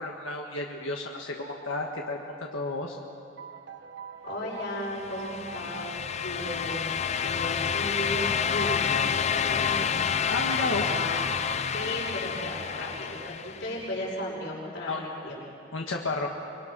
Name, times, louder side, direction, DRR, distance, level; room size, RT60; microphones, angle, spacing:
voice 1, 0.0-3.0 10.3-10.9 14.9-15.0 15.7-16.3, left 2 dB, 85° left, 0 dB, 1.6 m, -32 dB
sound 1, 3.4-13.7, right 4 dB, 55° right, 1.1 m, -44 dB
voice 2, 4.2-6.9 7.2-10.0 10.6-11.2 11.7-15.4, left 1 dB, 65° left, -8 dB, 6.3 m, -35 dB
sound 2, 4.9-13.8, left 7 dB, 35° left, 0.5 m, -29 dB
24.0 x 23.5 x 6.2 m, 2.8 s
head